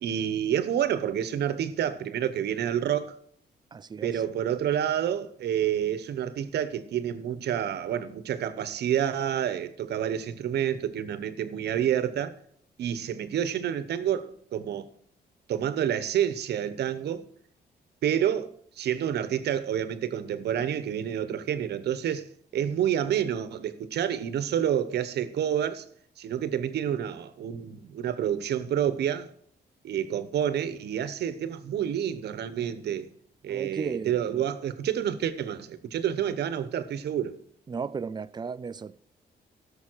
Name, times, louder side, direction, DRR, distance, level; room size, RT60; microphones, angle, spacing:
voice 1, 0.0-3.1 4.0-12.3 12.8-14.9 15.5-17.2 18.0-22.3 22.5-25.8 26.2-29.3 29.8-33.1 33.4-37.4, right 9 dB, 80° right, 1.0 m, -28 dB
voice 2, 3.7-4.2 33.5-34.5 37.7-38.9, right 5 dB, 25° right, 0.4 m, -35 dB
16.0 x 7.0 x 4.6 m
wide cardioid pair, 150°, 17 cm